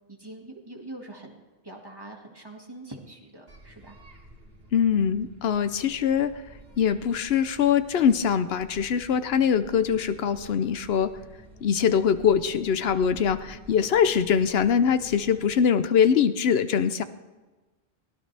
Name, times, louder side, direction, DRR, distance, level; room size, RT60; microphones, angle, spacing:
voice 1, 0.1-4.0, right 2 dB, 25° right, 1 dB, 2.0 m, -44 dB
sound 1, 3.5-15.6, right 1 dB, 70° right, 2.7 m, -50 dB
voice 2, 4.7-6.3 6.8-11.1 11.6-17.0, left 7 dB, 80° left, 12 dB, 0.9 m, -23 dB
23.0 x 17.5 x 3.4 m, 1.2 s
omnidirectional pair, 1.0 m